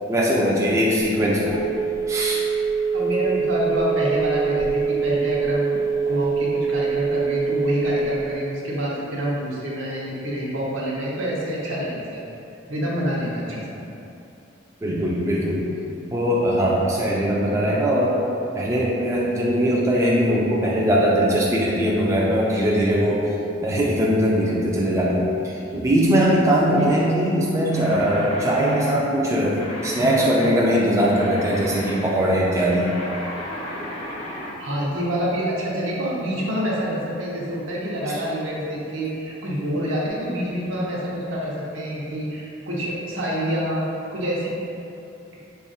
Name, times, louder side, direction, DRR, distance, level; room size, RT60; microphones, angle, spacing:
voice 1, 0.1-1.6 2.1-2.4 14.8-15.8 16.1-18.2 18.5-23.3 23.6-32.9 38.1-38.2, equal, 15° right, -4 dB, 0.3 m, -20 dB
Telephone, 1.0-8.3, right 5 dB, 75° left, 0.6 m, -24 dB
voice 2, 2.9-5.8 6.0-12.2 12.7-13.8 26.7-26.9 34.6-44.5, equal, 80° right, -5 dB, 0.8 m, -27 dB
sound 1, 27.7-34.6, left 1 dB, 30° left, 0.6 m, -35 dB
3.4 x 2.4 x 3.9 m, 2.7 s
head